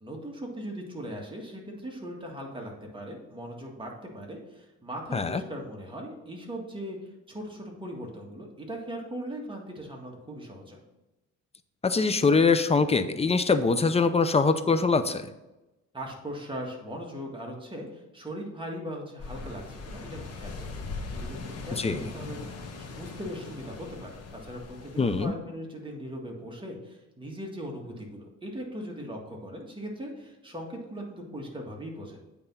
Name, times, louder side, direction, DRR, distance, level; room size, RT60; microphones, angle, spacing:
voice 1, 0.0-7.0 7.3-10.8 15.9-32.2, equal, 15° right, -1 dB, 1.8 m, -39 dB
voice 2, 11.8-15.3 21.8-22.1 25.0-25.3, left 4 dB, 20° left, 10 dB, 0.5 m, -23 dB
sound 1, 19.2-25.3, left 4 dB, 55° left, 1.4 m, -40 dB
8.7 x 3.5 x 5.6 m, 1.0 s
cardioid pair, 90°, 30 cm